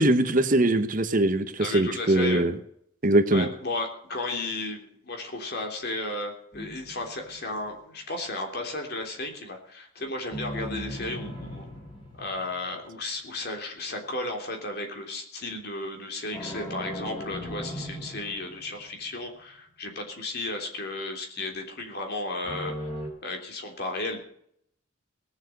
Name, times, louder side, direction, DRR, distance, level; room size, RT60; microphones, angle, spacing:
voice 1, 0.0-2.5 3.0-3.5, right 1 dB, 40° right, 10 dB, 1.0 m, -22 dB
voice 2, 1.6-2.4 3.3-11.7 12.2-22.7 23.2-24.2, left 2 dB, 50° left, 3 dB, 3.3 m, -34 dB
sound 1, 6.5-7.7 10.3-13.0 16.3-19.0 22.4-23.1, equal, 25° left, 5.0 m, -38 dB
18.5 x 7.6 x 7.8 m, 0.69 s
head